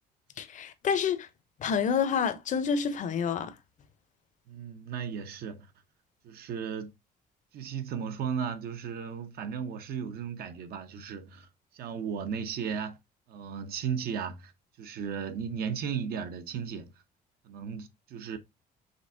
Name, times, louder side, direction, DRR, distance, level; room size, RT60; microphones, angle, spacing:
voice 1, 0.4-1.3 1.6-3.5, left 7 dB, 50° left, 0.7 m, -28 dB
voice 2, 4.5-5.7 6.2-6.9 7.5-11.5 11.7-13.0 13.3-14.5 14.8-16.9 17.4-18.4, right 7 dB, 65° right, 0.8 m, -35 dB
5.2 x 3.3 x 2.6 m
cardioid pair, 110°, 17 cm